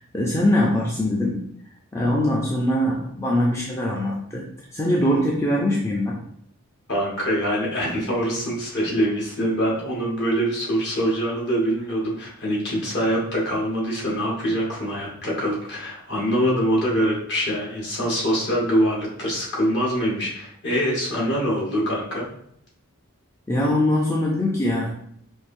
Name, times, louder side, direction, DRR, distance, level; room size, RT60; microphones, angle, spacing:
voice 1, 0.1-1.4 1.9-6.2 23.5-24.9, left 1 dB, 15° left, -4 dB, 0.4 m, -22 dB
voice 2, 6.9-22.3, equal, 50° left, -4 dB, 1.3 m, -24 dB
4.6 x 2.6 x 2.6 m, 0.70 s
head